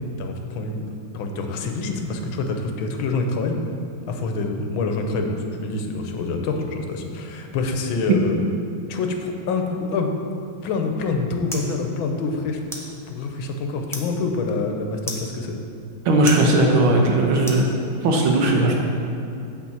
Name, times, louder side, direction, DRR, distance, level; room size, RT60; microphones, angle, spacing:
voice 1, 0.2-0.9 1.1-3.6 4.1-8.5 8.9-10.1 10.6-12.6 13.1-15.6, left 3 dB, 85° left, 4 dB, 1.6 m, -26 dB
sound 1, 10.7-18.2, left 1 dB, 5° left, 0.5 m, -39 dB
voice 2, 16.1-17.7 18.0-18.8, right 2 dB, 90° right, 1 dB, 1.9 m, -17 dB
8.8 x 4.2 x 7.3 m, 2.7 s
omnidirectional pair, 2.2 m